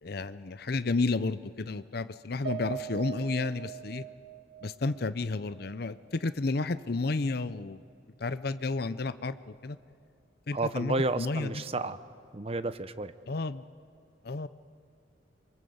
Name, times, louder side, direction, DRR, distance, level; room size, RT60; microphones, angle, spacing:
voice 1, 0.0-4.1 4.6-7.8 8.2-9.8 10.5-11.6 13.3-13.6 14.2-14.5, left 3 dB, 55° left, 14 dB, 0.6 m, -31 dB
Piano, 2.4-6.9 7.3-7.4 7.8-8.0, right 11 dB, 70° right, 1.8 m, -43 dB
voice 2, 10.5-12.0 12.3-13.1, right 2 dB, 30° right, 13 dB, 0.7 m, -31 dB
26.0 x 24.0 x 7.9 m, 2.5 s
head